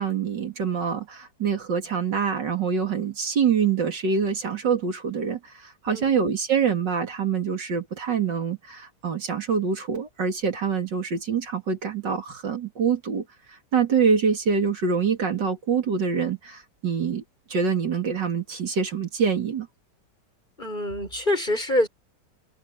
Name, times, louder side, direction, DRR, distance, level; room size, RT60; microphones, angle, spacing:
voice 1, 0.0-17.2 17.5-19.7, right 6 dB, 75° right, 3.1 m, -25 dB
voice 2, 20.6-21.9, left 1 dB, 25° left, 6.6 m, -25 dB
omnidirectional pair, 1.9 m